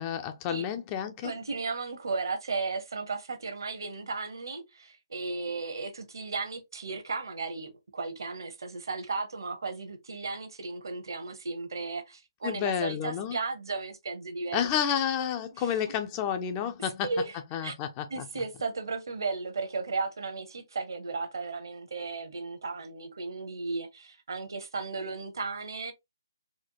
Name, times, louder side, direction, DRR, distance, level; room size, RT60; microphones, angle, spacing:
voice 1, 0.0-1.3 12.4-13.4 14.5-17.1 17.5-18.2, left 9 dB, 20° left, 0.4 m, -30 dB
voice 2, 1.2-14.7 16.8-17.4 17.6-17.7 18.1-25.9, right 4 dB, 60° right, 0.9 m, -35 dB
4.2 x 2.2 x 2.9 m
figure-of-eight pair, 145°, 2 cm